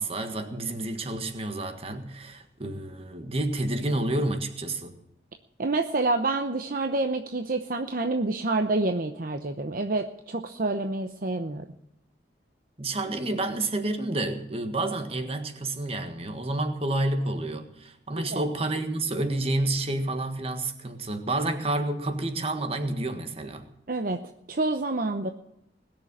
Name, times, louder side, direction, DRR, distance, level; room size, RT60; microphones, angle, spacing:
voice 1, 0.0-4.9 12.8-23.7, right 2 dB, 35° right, 1.6 m, -29 dB
voice 2, 5.6-11.6 18.2-18.5 23.9-24.2 24.5-25.3, right 2 dB, 50° right, 0.8 m, -28 dB
20.5 x 6.9 x 8.9 m
head